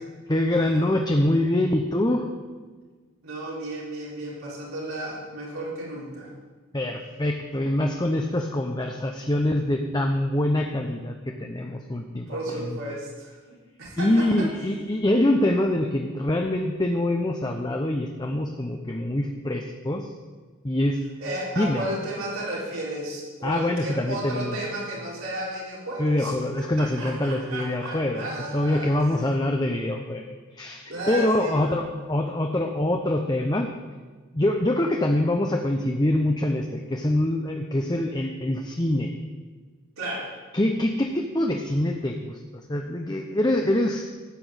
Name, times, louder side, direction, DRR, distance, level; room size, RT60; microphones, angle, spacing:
voice 1, 0.3-2.3 6.7-12.8 14.0-20.1 20.6-21.0 21.6-21.9 23.4-24.6 26.0-28.3 28.5-33.7 34.3-39.1 40.5-42.4 42.7-44.0, left 1 dB, 20° left, 3 dB, 0.8 m, -25 dB
voice 2, 3.2-6.3 12.3-14.5 21.2-26.3 26.8-29.2 30.9-31.8 40.0-40.3, right 1 dB, 85° right, -5 dB, 3.9 m, -33 dB
14.0 x 6.1 x 8.9 m, 1.4 s
head